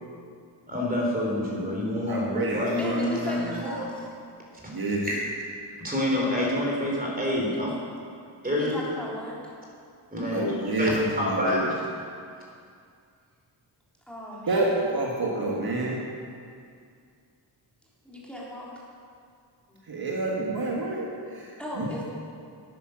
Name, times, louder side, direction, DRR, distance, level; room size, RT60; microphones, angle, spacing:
voice 1, 0.7-3.3 3.6-3.8 5.0-5.2 5.8-7.8 8.4-8.8 10.1-10.5 10.8-11.6, left 1 dB, 20° right, -3 dB, 3.6 m, -27 dB
voice 2, 2.1-3.0 3.4-3.6 4.7-5.1 10.2-11.7 14.5-16.1 19.9-22.0, right 2 dB, 50° right, -2 dB, 1.7 m, -29 dB
voice 3, 2.8-4.1 7.4-7.6 8.6-9.4 14.1-14.7 18.0-18.7 19.7-19.8 21.6-22.0, left 1 dB, 5° left, -6 dB, 3.1 m, -36 dB
10.0 x 9.3 x 6.3 m, 2.3 s
wide cardioid pair, 90°, 45 cm